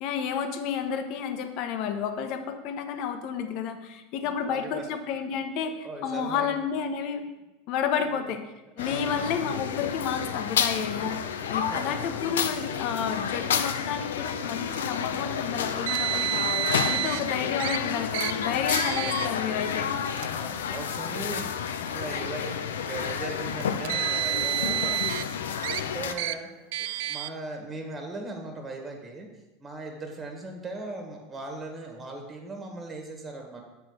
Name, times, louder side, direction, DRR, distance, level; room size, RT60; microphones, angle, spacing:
voice 1, 0.0-7.2 7.7-8.4 8.8-19.9, left 7 dB, 55° left, 7 dB, 0.9 m, -31 dB
voice 2, 4.4-4.8 5.8-6.5 8.0-8.2 8.8-9.4 11.7-12.2 17.0-17.6 18.8-19.2 20.3-25.0 25.5-26.5 26.8-29.3 29.6-33.6, right 2 dB, 25° right, 3 dB, 1.6 m, -39 dB
sound 1, 8.8-26.1, left 7 dB, 85° left, 0.5 m, -30 dB
Car, 15.9-17.2 17.6-17.8 18.1-18.3 18.7-19.3 20.1-20.3 21.2-21.3 23.6-25.2 25.6-25.8 26.2-26.4 26.7-27.3, right 14 dB, 70° right, 0.3 m, -29 dB
6.4 x 4.5 x 6.5 m, 1.0 s
hypercardioid pair, 95°, 0 cm